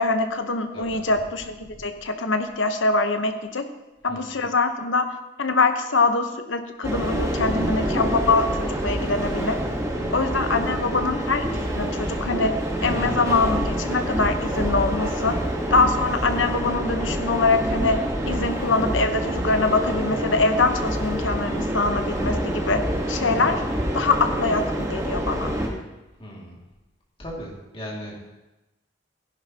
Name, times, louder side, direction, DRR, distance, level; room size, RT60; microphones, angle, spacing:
voice 1, 0.0-3.6 4.0-5.1 5.4-9.6 10.1-11.5 11.7-12.5 12.8-15.4 15.7-18.0 18.3-22.8 23.1-23.6 23.9-25.5, left 3 dB, 75° left, 7 dB, 1.0 m, -23 dB
voice 2, 4.1-4.4 7.4-8.1 9.9-10.3 12.8-13.7 23.3-23.7 24.1-24.2 26.2-26.6 27.2-28.2, equal, 30° left, -3 dB, 2.3 m, -37 dB
sound 1, 6.8-25.7, right 1 dB, 15° right, 1.3 m, -27 dB
15.0 x 10.5 x 2.9 m, 1.0 s
head